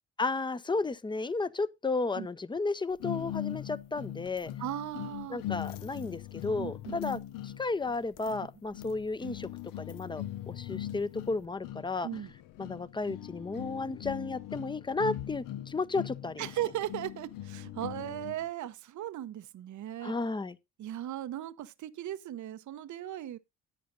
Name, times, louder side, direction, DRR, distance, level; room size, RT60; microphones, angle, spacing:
voice 1, 0.2-4.5 5.3-9.5 9.8-12.1 12.6-16.4 20.0-20.6, left 3 dB, 15° left, 0.8 m, -33 dB
sound 1, 3.0-18.5, left 12 dB, 80° left, 0.8 m, -41 dB
voice 2, 4.6-5.4 6.6-7.2 12.0-12.3 16.4-20.2 20.8-23.4, right 12 dB, 65° right, 0.8 m, -37 dB
11.0 x 8.4 x 3.9 m
cardioid pair, 85°, 32 cm